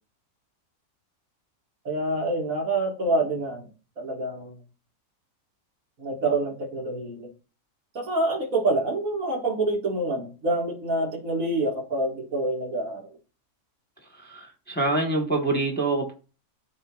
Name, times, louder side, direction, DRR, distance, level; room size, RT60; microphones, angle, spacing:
voice 1, 1.9-3.7 4.0-4.6 6.0-7.3 7.9-13.1, right 2 dB, 65° right, 2.3 m, -27 dB
voice 2, 14.1-16.1, right 2 dB, 5° left, 1.1 m, -26 dB
12.5 x 4.4 x 2.4 m
omnidirectional pair, 1.5 m